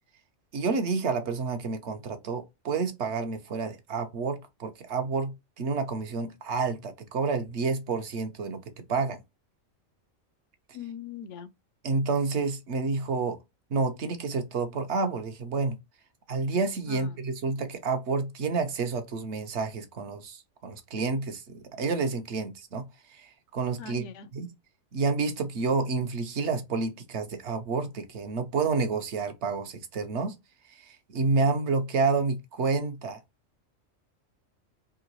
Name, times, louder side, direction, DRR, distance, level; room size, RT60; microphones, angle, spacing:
voice 1, 0.5-8.6 8.9-9.2 11.8-13.4 13.7-15.8 16.3-22.8 23.2-23.3 23.5-24.1 24.3-24.5 24.9-30.4 30.9-33.2, right 4 dB, 60° right, 1.0 m, -29 dB
voice 2, 10.7-11.5 16.9-17.1 23.8-24.3, left 7 dB, 70° left, 0.9 m, -40 dB
3.8 x 2.9 x 2.9 m
omnidirectional pair, 1.4 m